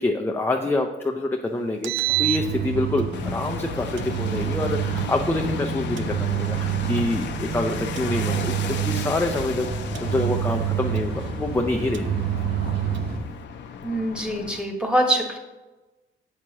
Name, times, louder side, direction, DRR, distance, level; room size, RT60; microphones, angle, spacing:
voice 1, 0.0-12.1 12.4-12.5, left 2 dB, 10° left, 3 dB, 0.5 m, -27 dB
Engine, 1.7-3.2 4.0-5.2 6.0-7.2 8.0-9.3 10.0-11.3 11.9-13.2, right 17 dB, 70° right, 0.4 m, -27 dB
sound 1, 2.3-13.2, right 2 dB, 55° right, 1.7 m, -32 dB
sound 2, 3.1-14.6, left 7 dB, 65° left, 0.7 m, -36 dB
voice 2, 13.8-15.4, right 1 dB, 5° right, 3 dB, 1.3 m, -24 dB
7.4 x 6.2 x 2.8 m, 1.1 s
cardioid pair, 90°, 20 cm